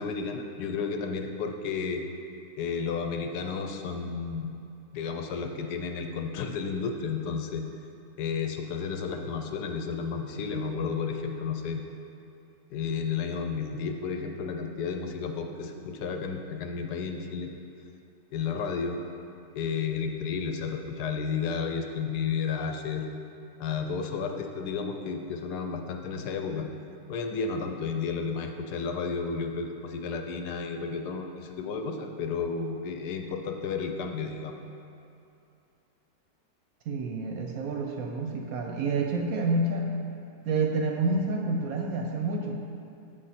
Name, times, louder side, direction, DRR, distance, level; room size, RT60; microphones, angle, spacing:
voice 1, 0.0-2.0 2.6-4.6 4.9-7.7 8.2-11.8 12.7-17.5 18.3-19.0 19.5-23.1 23.6-26.7 27.1-34.6, left 5 dB, 75° left, 4 dB, 1.1 m, -32 dB
voice 2, 36.9-39.9 40.4-42.5, right 3 dB, 70° right, 1 dB, 0.9 m, -28 dB
7.6 x 5.1 x 4.2 m, 2.7 s
omnidirectional pair, 1.8 m